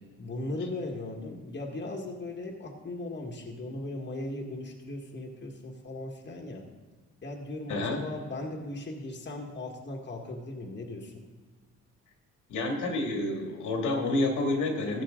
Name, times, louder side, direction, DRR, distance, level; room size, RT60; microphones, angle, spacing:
voice 1, 0.2-6.7 7.2-11.2, left 2 dB, 35° left, 1 dB, 1.7 m, -38 dB
voice 2, 7.7-8.0 12.5-15.0, left 2 dB, 80° left, 2 dB, 2.3 m, -29 dB
15.0 x 7.3 x 3.8 m, 1.4 s
cardioid pair, 90°, 30 cm